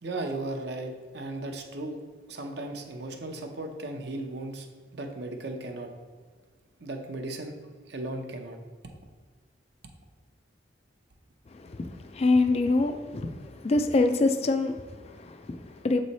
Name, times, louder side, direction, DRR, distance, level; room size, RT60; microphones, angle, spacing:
voice 1, 0.0-2.0 2.3-4.7 4.9-5.9 6.8-8.6, right 2 dB, 60° right, 4 dB, 0.7 m, -36 dB
voice 2, 11.6-16.0, left 3 dB, 35° left, 8 dB, 0.4 m, -26 dB
7.3 x 3.2 x 4.1 m, 1.5 s
head